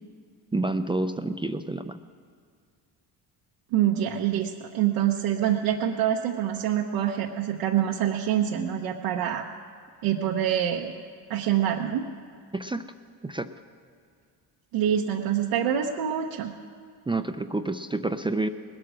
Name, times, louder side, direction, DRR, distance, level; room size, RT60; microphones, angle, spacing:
voice 1, 0.5-2.0 12.5-12.9 13.2-13.5 17.1-18.5, right 2 dB, 10° right, 9 dB, 0.4 m, -28 dB
voice 2, 3.7-9.5 10.0-10.9 11.3-12.1 14.7-16.5, right 10 dB, 85° right, 0 dB, 1.0 m, -25 dB
19.5 x 8.7 x 6.2 m, 2.2 s
supercardioid pair, 75°, 48 cm